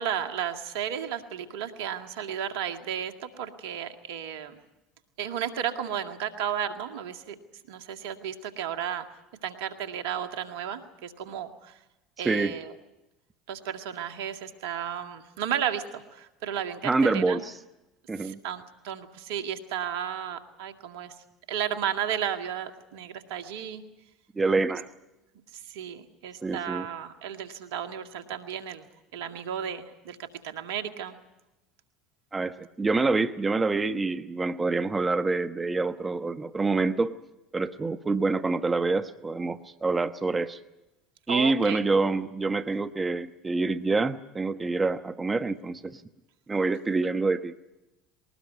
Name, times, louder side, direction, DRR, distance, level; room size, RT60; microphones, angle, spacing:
voice 1, 0.0-4.6 5.2-7.4 7.7-9.0 9.4-11.7 12.2-12.7 13.5-17.4 18.2-21.1 21.5-23.8 25.5-28.9 29.1-31.2 41.3-41.9, right 9 dB, 70° right, 7 dB, 1.9 m, -33 dB
voice 2, 12.2-12.6 16.8-17.5 18.1-18.4 24.3-24.9 26.4-26.9 32.3-37.1 37.5-40.6 41.3-46.0 46.5-47.6, right 3 dB, 20° right, 10 dB, 1.1 m, -26 dB
21.0 x 19.5 x 9.5 m, 0.97 s
hypercardioid pair, 75°, 0 cm